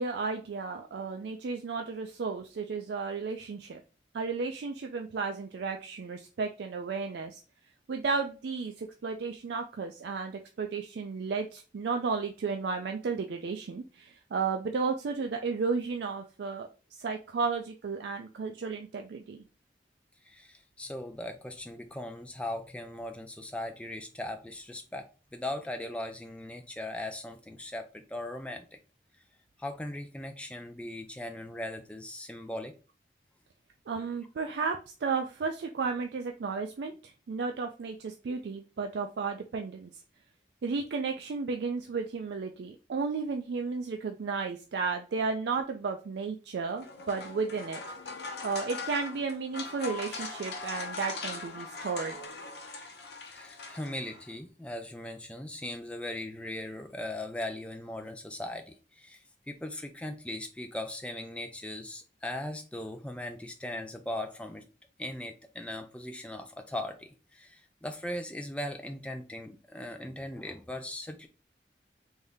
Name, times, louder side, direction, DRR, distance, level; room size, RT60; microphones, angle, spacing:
voice 1, 0.0-3.8 4.1-7.4 7.9-19.4 33.9-36.9 37.3-39.9 40.6-47.8 48.4-52.2, right 4 dB, 75° right, 0.4 m, -33 dB
voice 2, 20.2-28.8 29.6-32.7 53.3-64.6 65.0-71.3, left 1 dB, 5° left, 0.4 m, -39 dB
sound 1, 46.7-54.3, left 3 dB, 70° left, 0.8 m, -41 dB
3.5 x 2.7 x 3.4 m
head